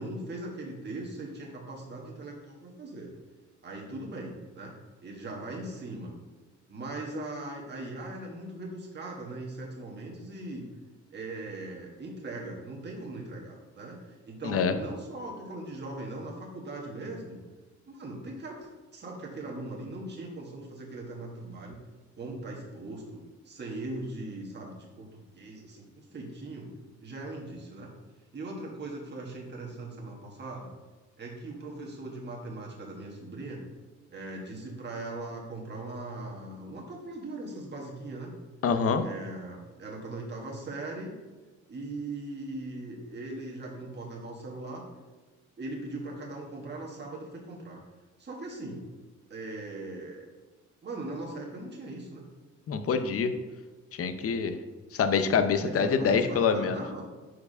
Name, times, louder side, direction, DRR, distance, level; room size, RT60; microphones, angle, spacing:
voice 1, 0.0-3.1 3.6-4.7 5.0-6.1 6.7-10.7 11.1-17.4 17.9-21.8 22.2-26.7 27.0-27.9 28.3-30.7 31.2-33.6 34.1-38.3 39.0-41.1 41.7-44.8 45.6-47.8 48.2-48.8 49.3-50.3 50.8-52.2 55.5-57.0, right 2 dB, 35° right, -2 dB, 1.6 m, -40 dB
voice 2, 38.6-39.0 52.7-53.3 54.0-54.5 54.9-56.8, left 6 dB, 50° left, 9 dB, 0.7 m, -25 dB
4.7 x 4.7 x 5.3 m, 1.3 s
cardioid pair, 90°, 30 cm